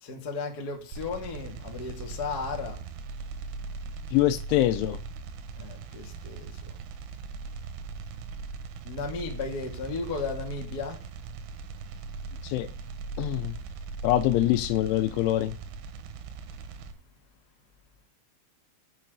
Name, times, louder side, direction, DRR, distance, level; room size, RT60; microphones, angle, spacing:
voice 1, 0.0-2.8 5.5-6.6 8.8-11.0, left 4 dB, 50° left, 1.2 m, -35 dB
sound 1, 0.9-16.9, right 4 dB, 90° right, 3.9 m, -39 dB
voice 2, 4.1-5.0 12.4-12.7 13.2-13.6 14.0-15.5, left 14 dB, 80° left, 2.9 m, -24 dB
7.5 x 6.8 x 7.9 m
omnidirectional pair, 5.8 m